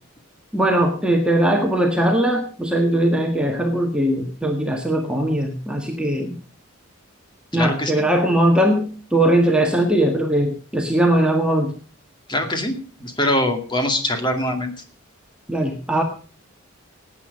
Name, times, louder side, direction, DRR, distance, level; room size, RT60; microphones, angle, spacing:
voice 1, 0.5-6.3 7.5-11.7 15.5-16.0, right 1 dB, 5° right, 2 dB, 1.6 m, -20 dB
voice 2, 7.5-8.0 12.3-14.7, left 1 dB, 20° left, 5 dB, 2.2 m, -23 dB
18.5 x 8.9 x 5.3 m, 0.39 s
head